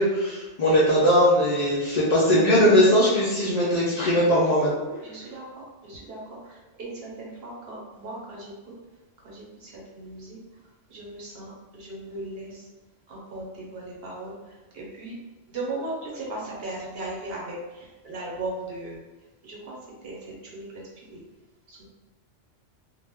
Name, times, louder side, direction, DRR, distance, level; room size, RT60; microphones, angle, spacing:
voice 1, 0.0-4.7, equal, 65° left, -7 dB, 0.4 m, -20 dB
voice 2, 3.2-3.6 4.8-8.7 9.2-10.6 10.9-12.7 13.1-15.2 15.5-19.0 19.4-21.2 21.7-21.8, right 2 dB, 60° right, -4 dB, 0.9 m, -38 dB
2.1 x 2.0 x 3.4 m, 1.2 s
omnidirectional pair, 1.2 m